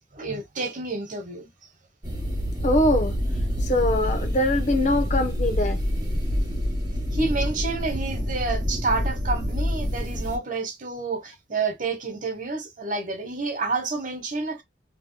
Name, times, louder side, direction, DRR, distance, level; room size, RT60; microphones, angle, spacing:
voice 1, 0.1-1.5 7.1-14.6, right 3 dB, 45° right, 1.1 m, -29 dB
sound 1, 2.0-10.4, equal, 25° right, 1.8 m, -27 dB
voice 2, 2.6-3.1 3.6-5.8, left 1 dB, 40° left, 0.9 m, -22 dB
3.6 x 3.1 x 2.2 m
head